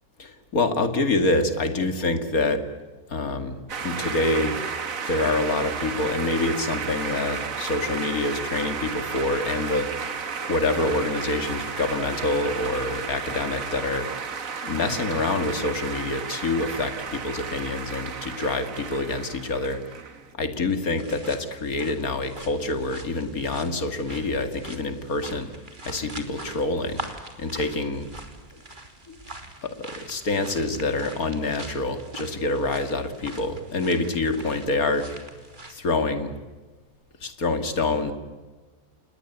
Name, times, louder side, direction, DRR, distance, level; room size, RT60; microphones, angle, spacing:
voice 1, 0.2-2.6 3.1-3.6 3.8-4.6 5.0-9.9 10.5-14.1 14.6-19.8 20.3-25.5 25.8-27.0 27.4-28.1 29.1-29.2 29.6-35.1 35.7-36.3 37.2-38.1, left 2 dB, 70° left, 8 dB, 2.8 m, -26 dB
sound 1, 3.7-20.3, right 5 dB, 65° right, 1.9 m, -33 dB
sound 2, 21.0-35.7, right 2 dB, 30° right, 3.1 m, -43 dB
29.5 x 20.5 x 8.2 m, 1.3 s
omnidirectional pair, 1.6 m